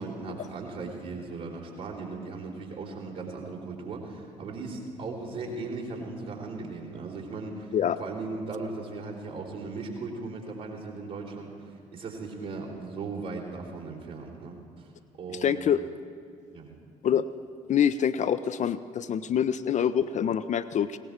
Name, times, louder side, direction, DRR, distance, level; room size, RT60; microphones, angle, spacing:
voice 1, 0.0-14.9 15.2-15.6 16.5-16.7, right 3 dB, 60° right, -6 dB, 3.2 m, -37 dB
voice 2, 15.3-15.8 17.0-17.2 17.7-21.0, left 8 dB, 40° left, 12 dB, 0.5 m, -25 dB
19.5 x 17.5 x 3.5 m, 2.3 s
figure-of-eight pair, 45°, 19 cm